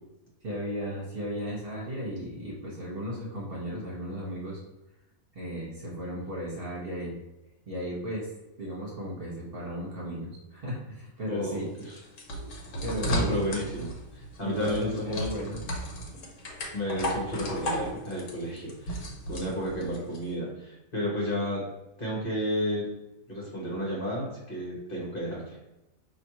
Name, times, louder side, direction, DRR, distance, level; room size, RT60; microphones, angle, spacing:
voice 1, 0.4-4.6 5.3-7.2 7.7-8.3 8.6-11.7 12.8-13.4 14.4-15.6, equal, 40° right, -6 dB, 1.5 m, -35 dB
voice 2, 11.3-11.9 13.1-15.3 16.7-21.6 22.0-22.9 23.3-25.6, equal, 40° left, -5 dB, 1.3 m, -32 dB
sound 1, 11.5-20.2, equal, 65° left, 1.2 m, -34 dB
5.1 x 2.8 x 3.0 m, 0.94 s
omnidirectional pair, 1.5 m